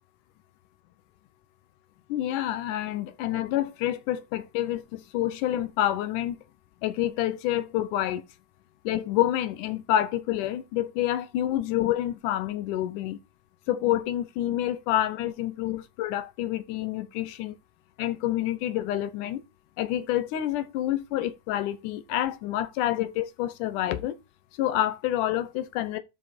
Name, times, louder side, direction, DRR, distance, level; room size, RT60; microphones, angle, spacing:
voice 1, 2.1-6.4 6.8-8.3 8.8-13.2 13.7-17.6 18.0-19.4 19.8-24.2 24.6-26.0, left 13 dB, 80° left, 2.3 m, -28 dB
11.0 x 5.0 x 4.4 m
omnidirectional pair, 3.6 m